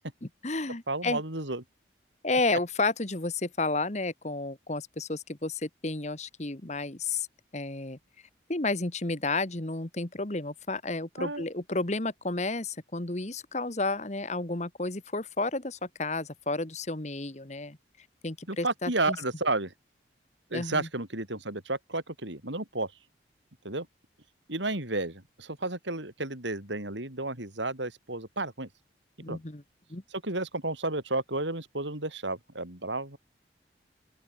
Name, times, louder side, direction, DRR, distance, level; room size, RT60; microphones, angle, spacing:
voice 1, 0.2-1.2 2.2-7.3 7.5-8.0 8.5-17.8 18.2-19.2 20.5-20.9 29.2-29.6 29.9-30.0, left 3 dB, 35° left, 1.4 m, -31 dB
voice 2, 0.9-1.6 11.2-11.4 18.5-19.7 20.5-22.9 23.6-23.9 24.5-28.7 29.3-29.4 30.1-33.2, right 2 dB, 75° right, 5.1 m, -32 dB
open air
head